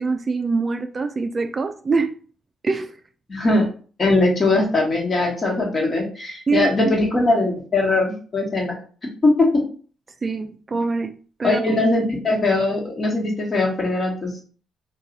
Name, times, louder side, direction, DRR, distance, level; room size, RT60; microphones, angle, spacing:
voice 1, 0.0-2.1 2.6-2.9 6.5-6.9 10.2-11.1 11.4-11.6, right 4 dB, 35° right, 0.3 m, -24 dB
voice 2, 3.3-3.7 4.0-8.8 9.2-9.5 11.4-14.4, left 2 dB, 35° left, 1.3 m, -20 dB
2.6 x 2.3 x 3.9 m
cardioid pair, 90°, 0 cm